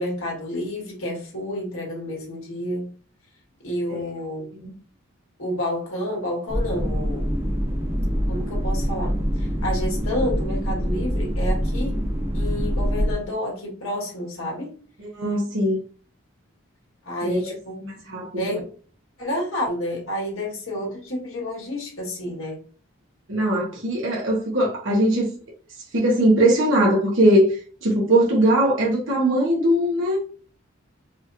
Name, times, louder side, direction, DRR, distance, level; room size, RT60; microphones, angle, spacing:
voice 1, 0.0-2.9 3.6-4.5 5.4-7.3 8.3-12.0 12.3-14.8 17.1-17.8 18.4-18.6 19.2-22.6, left 1 dB, 75° left, 1.8 m, -29 dB
sound 1, 6.5-13.1, equal, 25° right, 1.0 m, -25 dB
voice 2, 15.0-15.8 17.2-17.5 17.8-18.6 23.3-25.3 25.9-27.5 27.8-30.3, right 1 dB, 65° right, 1.2 m, -20 dB
4.8 x 3.0 x 2.7 m
head